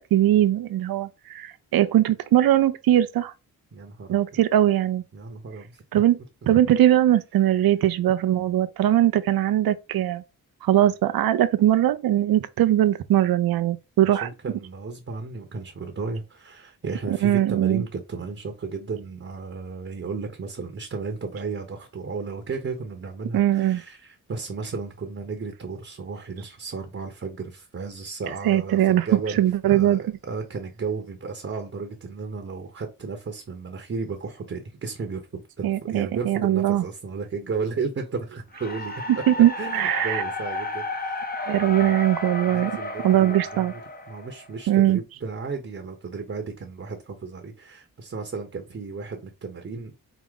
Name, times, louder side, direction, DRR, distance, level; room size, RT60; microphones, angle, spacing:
voice 1, 0.0-3.3 4.1-5.0 5.9-6.2 6.5-10.2 10.6-14.3 17.2-17.8 23.3-23.8 28.4-29.0 29.4-30.0 35.6-36.8 39.3-40.2 41.5-42.8 43.0-43.7 44.7-45.0, right 12 dB, 80° right, 0.6 m, -20 dB
voice 2, 3.7-4.4 5.1-6.0 14.0-39.0 39.4-41.2 41.6-43.8 44.1-50.1, right 4 dB, 40° right, 0.9 m, -34 dB
sound 1, 38.5-44.7, left 2 dB, 25° left, 0.8 m, -33 dB
4.8 x 2.0 x 3.8 m
cardioid pair, 70°, 35 cm